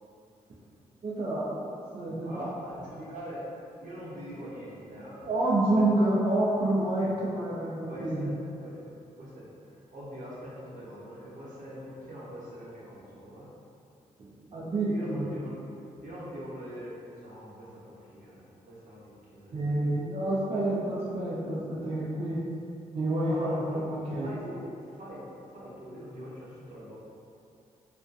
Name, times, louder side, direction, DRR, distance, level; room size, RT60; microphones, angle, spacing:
voice 1, 1.0-1.7 1.9-2.6 5.2-8.3 14.2-15.3 19.5-22.4 22.9-24.3, right 1 dB, 40° right, -8 dB, 0.4 m, -28 dB
voice 2, 2.2-3.4 3.8-5.2 5.7-5.8 6.9-7.1 7.9-8.3 8.6-13.5 14.8-15.5 16.0-19.8 23.2-27.0, equal, 60° right, -7 dB, 0.8 m, -43 dB
2.4 x 2.2 x 2.5 m, 2.5 s
supercardioid pair, 50°, 15 cm